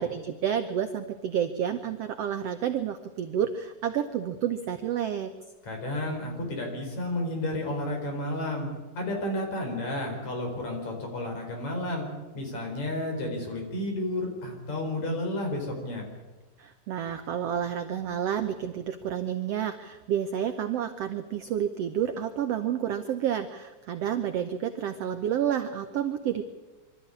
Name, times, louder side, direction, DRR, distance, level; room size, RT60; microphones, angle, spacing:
voice 1, 0.0-5.3 16.6-26.4, right 9 dB, 75° right, 8 dB, 1.4 m, -30 dB
voice 2, 5.6-8.7 9.0-12.1 12.3-16.1, left 1 dB, 55° left, 2 dB, 5.4 m, -31 dB
24.5 x 13.0 x 9.8 m, 1.2 s
omnidirectional pair, 3.9 m